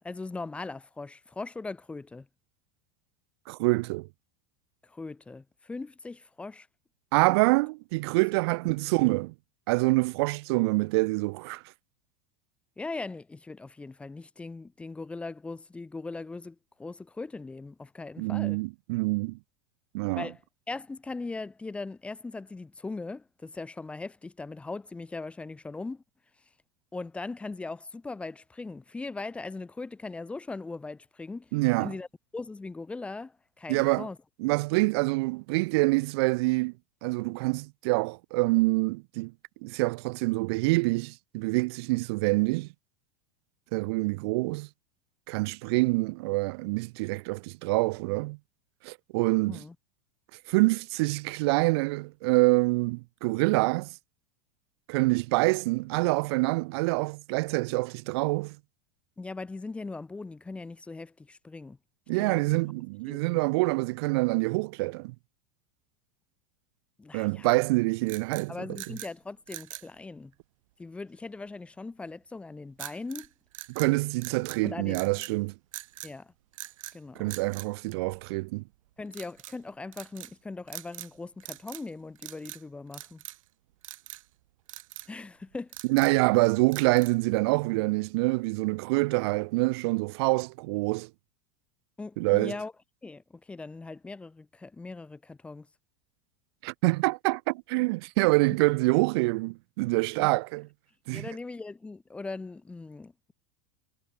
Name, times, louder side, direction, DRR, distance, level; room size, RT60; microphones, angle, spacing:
voice 1, 0.0-2.3 4.8-6.7 12.8-18.6 20.2-20.4 20.7-26.0 26.9-31.5 31.8-32.1 32.3-34.2 49.5-49.7 59.2-61.8 62.1-62.4 63.1-63.4 67.0-67.6 68.5-70.3 70.8-73.3 74.6-75.0 76.0-76.3 76.9-77.3 79.0-83.2 85.1-85.7 92.0-92.7 93.0-95.7 100.2-100.3 101.1-103.3, left 3 dB, 5° left, 4.2 m, -39 dB
voice 2, 3.5-4.1 7.1-9.3 9.7-11.6 18.2-19.4 19.9-20.3 31.5-31.9 33.7-34.1 34.4-36.7 37.0-39.3 39.6-42.7 43.7-44.7 45.3-48.4 48.8-49.6 50.5-53.9 54.9-58.6 62.1-65.1 67.1-68.8 73.7-75.5 77.2-78.6 85.9-91.1 92.2-92.5 96.6-100.7 101.1-101.3, right 24 dB, 50° right, 1.7 m, -26 dB
sound 1, 68.0-69.1 69.5-69.9 72.8-73.3 73.5-74.6 74.9-75.4 75.7-76.1 76.5-77.0 77.3-78.5 79.1-79.6 79.9-80.3 80.7-81.1 81.4-81.9 82.2-82.6 82.9-83.5 83.8-84.2 84.7-85.1 85.5-86.2 86.7-87.3, right 16 dB, 75° right, 6.2 m, -43 dB
supercardioid pair, 180°, 17 cm